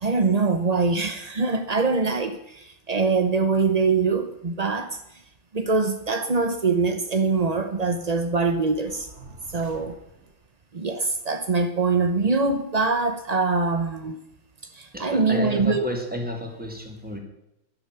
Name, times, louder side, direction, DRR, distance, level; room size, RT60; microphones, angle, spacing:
voice 1, 0.0-5.0 5.5-9.1 9.5-10.0 10.7-14.2 14.7-15.8, right 4 dB, 60° right, 7 dB, 0.4 m, -23 dB
sound 1, 8.9-10.5, right 2 dB, 35° right, 2.0 m, -47 dB
voice 2, 14.9-17.2, left 1 dB, 5° right, 2 dB, 2.6 m, -31 dB
11.5 x 11.0 x 8.2 m, 0.87 s
omnidirectional pair, 2.2 m